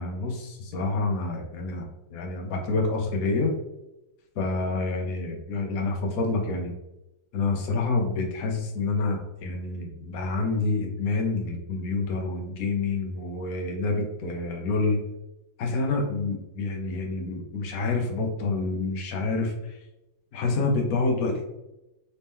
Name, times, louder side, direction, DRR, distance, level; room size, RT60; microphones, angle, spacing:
voice 1, 0.0-3.5 4.4-6.7 7.3-15.0 15.6-19.8 20.3-21.5, left 3 dB, 55° left, 2 dB, 1.1 m, -28 dB
4.2 x 2.9 x 3.5 m, 0.94 s
omnidirectional pair, 2.1 m